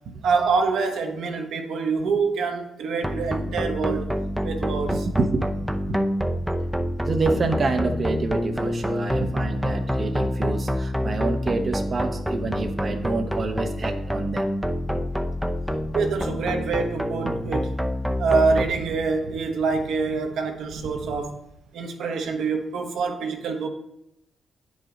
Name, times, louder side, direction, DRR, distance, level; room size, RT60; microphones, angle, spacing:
voice 1, 0.2-4.1 4.4-5.1 9.1-9.3 12.5-12.6 14.9-15.0 15.9-17.7 18.2-21.4 21.7-23.7, right 4 dB, 80° right, 4 dB, 1.0 m, -25 dB
sound 1, 3.0-18.6, equal, 5° right, 0.6 m, -27 dB
voice 2, 7.1-14.5, right 3 dB, 40° right, 5 dB, 0.7 m, -27 dB
9.2 x 5.0 x 3.8 m, 0.81 s
cardioid pair, 75°, 0 cm